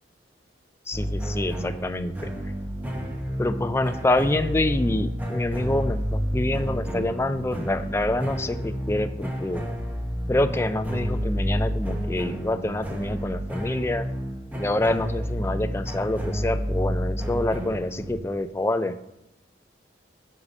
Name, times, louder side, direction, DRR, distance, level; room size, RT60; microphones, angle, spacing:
voice 1, 0.9-2.1 3.4-9.6 10.3-14.1 14.5-19.0, left 1 dB, 15° left, 10 dB, 0.3 m, -26 dB
sound 1, 0.9-18.2, equal, 10° right, 0.9 m, -30 dB
10.0 x 4.9 x 4.2 m, 0.84 s
head